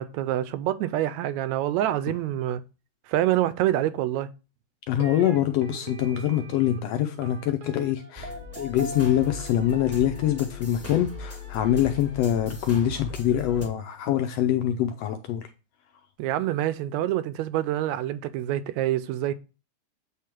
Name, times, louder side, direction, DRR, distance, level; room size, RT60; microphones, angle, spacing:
voice 1, 0.0-2.6 3.1-4.3 16.2-19.3, right 13 dB, 80° right, 1.8 m, -26 dB
voice 2, 4.9-15.5, left 11 dB, 80° left, 1.5 m, -24 dB
sound 1, 5.0-12.1, right 2 dB, 65° right, 1.4 m, -43 dB
sound 2, 8.2-13.7, left 4 dB, 10° left, 0.7 m, -39 dB
8.5 x 3.6 x 4.4 m
omnidirectional pair, 3.4 m